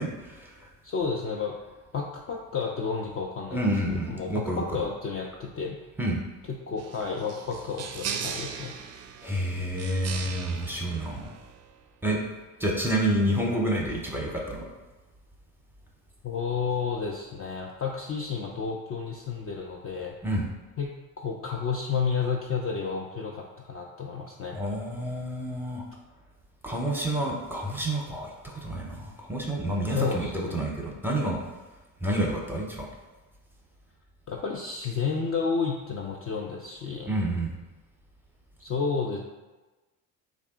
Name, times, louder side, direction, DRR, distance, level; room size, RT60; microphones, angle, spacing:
voice 1, 0.0-0.7 3.5-4.9 6.0-6.2 9.2-11.3 12.0-12.2 12.6-14.7 20.2-20.5 24.5-25.8 26.6-31.4 32.0-32.9 37.1-37.5, right 1 dB, 5° right, -1 dB, 0.8 m, -29 dB
voice 2, 0.8-1.6 1.9-3.6 3.9-5.8 6.5-8.7 16.2-20.1 20.8-24.6 29.9-30.6 34.3-37.1 38.6-39.2, left 5 dB, 30° left, -1 dB, 0.4 m, -31 dB
sound 1, 6.8-11.8, right 7 dB, 35° right, 0.4 m, -38 dB
3.4 x 2.4 x 3.7 m, 1.2 s
hypercardioid pair, 65°, 45 cm